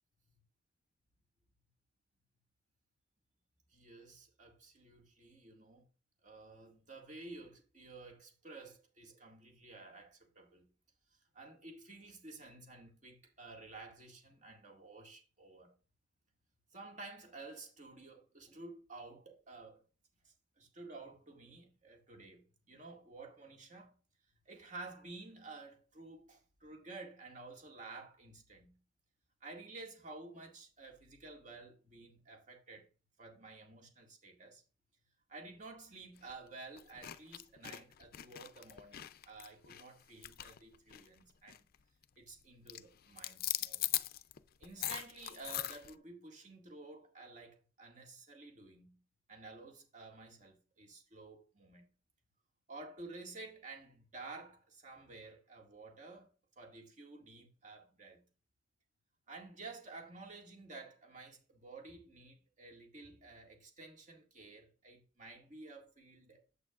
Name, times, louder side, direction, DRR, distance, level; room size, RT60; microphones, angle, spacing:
voice 1, 3.7-5.9 6.2-10.7 11.3-15.7 16.7-19.9 20.2-23.9 24.5-28.8 29.4-32.9 33.2-34.6 35.3-41.6 42.2-43.9 44.6-49.0 49.3-51.8 52.7-56.3 56.6-58.2 59.3-66.4, right 3 dB, 40° right, 2.0 m, -52 dB
sound 1, 36.2-36.3 36.8-41.2 41.5-41.8 42.0-42.4 42.7-45.9, left 14 dB, 50° left, 0.4 m, -40 dB
8.8 x 8.3 x 2.4 m
head